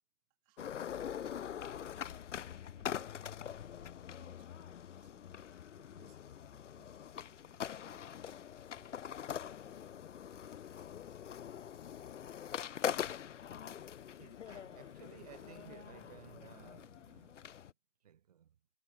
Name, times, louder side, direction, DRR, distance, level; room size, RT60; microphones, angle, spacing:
voice 1, 0.4-2.3 2.7-8.4 8.7-11.8, right 30 dB, 15° right, 5.4 m, -71 dB
sound 1, 0.6-17.7, left 9 dB, 85° left, 0.7 m, -43 dB
sound 2, 3.2-15.9, left 18 dB, 10° left, 5.7 m, -71 dB
voice 2, 14.2-17.5 18.0-18.6, right 9 dB, 35° right, 6.1 m, -57 dB
hypercardioid pair, 180°, 35 cm